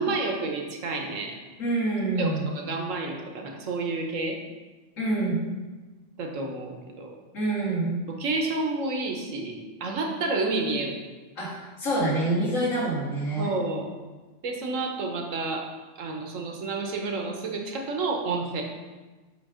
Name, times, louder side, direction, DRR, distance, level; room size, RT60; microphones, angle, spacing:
voice 1, 0.0-1.3 2.2-4.4 6.2-7.1 8.1-11.0 13.4-13.9 14.4-15.7 16.0-18.6, right 3 dB, 80° right, 2 dB, 1.3 m, -30 dB
voice 2, 1.6-2.6 5.0-5.5 7.3-8.0 11.4-13.5, right 2 dB, 85° left, -7 dB, 2.3 m, -26 dB
7.5 x 3.3 x 4.9 m, 1.3 s
omnidirectional pair, 1.3 m